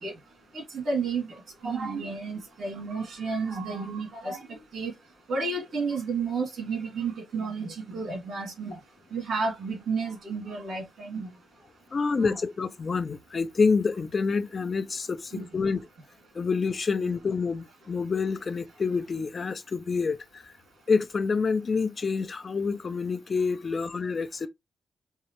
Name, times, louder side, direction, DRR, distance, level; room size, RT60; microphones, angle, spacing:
voice 1, 0.5-4.9 5.3-8.8 9.1-11.3 12.2-12.4 15.3-15.5, right 4 dB, 80° right, 2.7 m, -32 dB
voice 2, 11.9-15.8 16.3-20.4 20.9-24.5, left 4 dB, 45° left, 0.6 m, -27 dB
5.4 x 2.5 x 3.1 m
cardioid pair, 70°, 0 cm